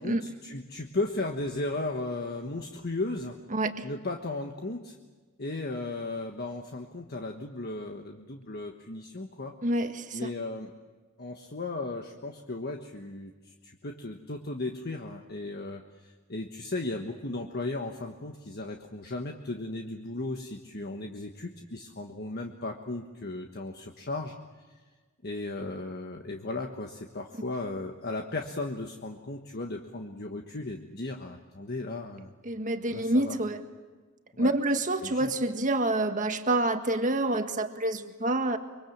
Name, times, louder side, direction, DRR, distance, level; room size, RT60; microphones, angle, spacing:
voice 1, 0.0-3.4 3.8-5.0 5.4-9.5 10.1-10.7 11.2-24.4 25.2-32.3 32.9-33.4 34.4-34.5 35.0-35.3, left 2 dB, 50° left, 3 dB, 1.4 m, -36 dB
voice 2, 3.5-3.9 9.6-10.3 32.4-33.6 34.4-38.6, right 1 dB, 40° right, 6 dB, 1.6 m, -27 dB
25.0 x 24.0 x 7.3 m, 1.3 s
head